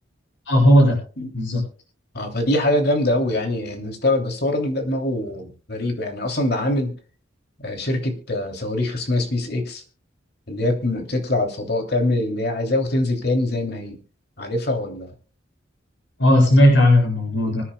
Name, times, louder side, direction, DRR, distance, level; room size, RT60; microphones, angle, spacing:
voice 1, 0.5-1.0 1.3-1.6 16.2-17.6, equal, 75° left, 1 dB, 7.2 m, -15 dB
voice 2, 2.1-6.9 7.6-9.8 10.5-14.0 14.4-15.1, left 1 dB, 60° left, 3 dB, 3.0 m, -23 dB
25.5 x 9.9 x 2.3 m, 0.37 s
head